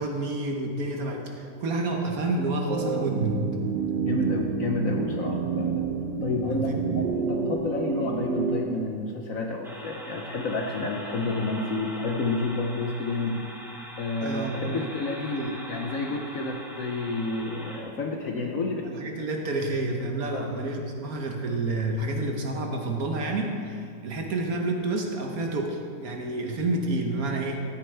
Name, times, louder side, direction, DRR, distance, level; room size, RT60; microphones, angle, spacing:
voice 1, 0.0-3.4 6.5-6.8 14.2-14.9 15.4-15.6 18.8-27.6, right 2 dB, 55° right, 2 dB, 1.2 m, -29 dB
sound 1, 2.7-8.6, right 6 dB, 80° right, 1.3 m, -29 dB
voice 2, 4.1-5.9 6.2-13.4 14.0-18.9 20.3-20.8, left 2 dB, 60° left, 1 dB, 0.9 m, -30 dB
sound 2, 9.6-17.8, equal, ahead, 0.8 m, -42 dB
13.0 x 9.7 x 3.3 m, 2.4 s
omnidirectional pair, 2.0 m